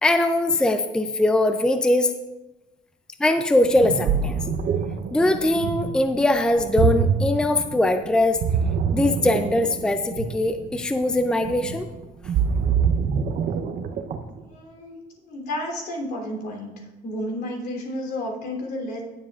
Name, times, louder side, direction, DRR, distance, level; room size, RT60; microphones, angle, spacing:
voice 1, 0.0-2.1 3.2-4.4 5.1-8.4 8.9-11.9, left 1 dB, 5° left, 8 dB, 0.5 m, -21 dB
Ocean, 3.6-14.4, right 6 dB, 60° right, 0.9 m, -25 dB
voice 2, 14.5-14.9 15.2-16.7 17.0-19.0, left 1 dB, 70° left, -1 dB, 3.3 m, -31 dB
18.0 x 7.5 x 2.5 m, 1.0 s
cardioid pair, 110°, 17 cm